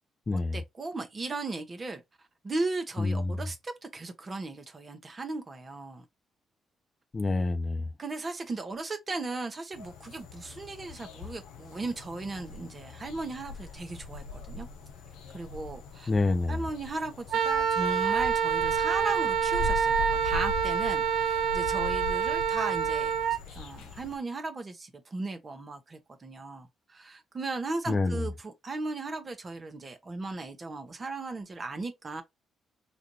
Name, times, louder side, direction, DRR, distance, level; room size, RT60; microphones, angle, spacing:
voice 1, 0.3-2.0 2.4-6.0 8.0-14.7 15.3-16.1 16.5-23.1 23.5-32.2, right 3 dB, 35° right, 1.1 m, -37 dB
voice 2, 3.0-3.4 7.1-7.9 16.1-16.6 27.9-28.3, left 3 dB, 35° left, 0.7 m, -27 dB
sound 1, 9.7-24.2, left 4 dB, 75° left, 0.7 m, -41 dB
Wind instrument woodwind instrument, 17.3-23.4, right 7 dB, 65° right, 0.4 m, -27 dB
4.2 x 2.6 x 3.1 m
hypercardioid pair, 45°, 0 cm